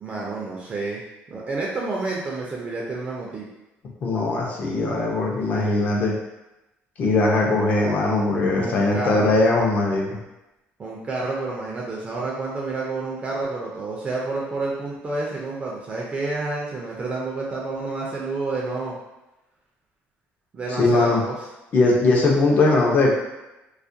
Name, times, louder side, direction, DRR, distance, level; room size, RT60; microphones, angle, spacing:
voice 1, 0.0-1.0 1.3-3.5 5.5-5.8 8.6-9.3 10.8-19.0 20.5-21.4, right 3 dB, 30° right, -3 dB, 0.4 m, -29 dB
voice 2, 4.0-6.1 7.0-10.2 20.7-21.2 21.7-23.1, left 2 dB, 45° left, -2 dB, 0.6 m, -20 dB
2.3 x 2.1 x 2.6 m, 0.97 s
cardioid pair, 130°, 4 cm